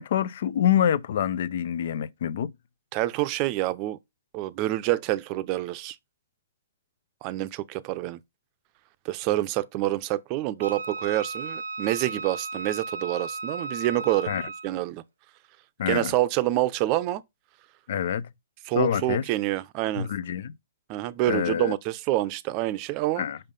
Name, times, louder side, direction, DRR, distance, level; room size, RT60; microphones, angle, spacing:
voice 1, 0.0-2.5 14.3-14.4 15.8-16.1 17.9-18.3 18.7-19.2 20.0-20.5 21.3-21.7 23.2-23.4, left 9 dB, 60° left, 0.6 m, -26 dB
voice 2, 2.9-4.0 4.3-6.0 7.2-8.2 9.0-14.3 14.6-15.0 15.9-17.2 18.7-20.1 20.9-23.2, right 16 dB, 35° right, 0.6 m, -27 dB
Wind instrument woodwind instrument, 10.6-14.8, right 3 dB, 90° right, 0.9 m, -35 dB
5.6 x 5.5 x 5.3 m
hypercardioid pair, 145°, 0 cm